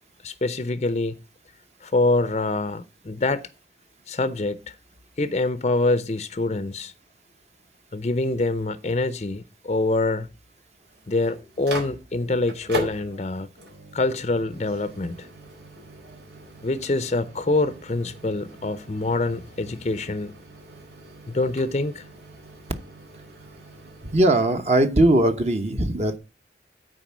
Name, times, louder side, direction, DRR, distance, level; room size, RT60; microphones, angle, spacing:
voice 1, 0.2-1.1 1.8-3.5 4.1-4.7 5.2-6.9 7.9-10.3 11.1-13.5 13.9-15.3 16.6-20.4 21.3-22.0, left 2 dB, 40° left, 0.5 m, -25 dB
Microwave oven, 10.8-24.4, right 1 dB, 75° right, 4.3 m, -40 dB
voice 2, 24.1-26.2, right 1 dB, 40° right, 0.9 m, -19 dB
9.0 x 4.5 x 7.3 m
head